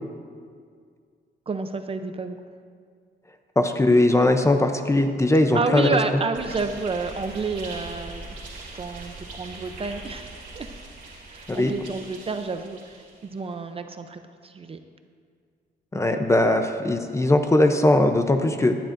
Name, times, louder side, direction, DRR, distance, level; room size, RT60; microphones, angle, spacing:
voice 1, 1.5-2.4 5.5-8.4 8.7-10.7 11.3-14.8, right 4 dB, 30° right, 8 dB, 0.5 m, -30 dB
voice 2, 3.6-5.9 11.5-11.7 15.9-18.8, left 1 dB, 15° left, 6 dB, 0.6 m, -20 dB
sound 1, 6.3-13.4, right 2 dB, 50° right, 2.4 m, -41 dB
17.5 x 12.0 x 2.6 m, 2.1 s
wide cardioid pair, 150°, 18 cm